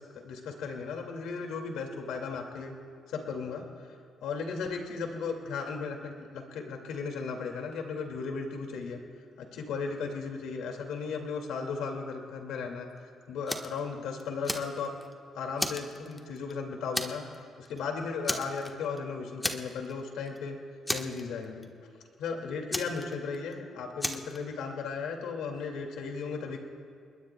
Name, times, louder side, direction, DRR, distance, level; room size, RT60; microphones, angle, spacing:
voice 1, 0.0-2.7 3.1-3.9 4.2-9.0 9.4-14.9 15.3-17.2 17.6-20.6 20.9-21.7 22.2-26.6, left 5 dB, 85° left, 3 dB, 2.4 m, -36 dB
Fire, 13.5-13.8 14.2-15.1 15.6-16.5 16.9-17.4 17.6-17.8 18.2-19.0 19.4-20.0 20.3-20.4 20.9-21.7 22.7-23.5 24.0-24.4, left 1 dB, 15° left, 1.4 m, -33 dB
29.0 x 20.5 x 2.3 m, 2.3 s
cardioid pair, 90°, 0 cm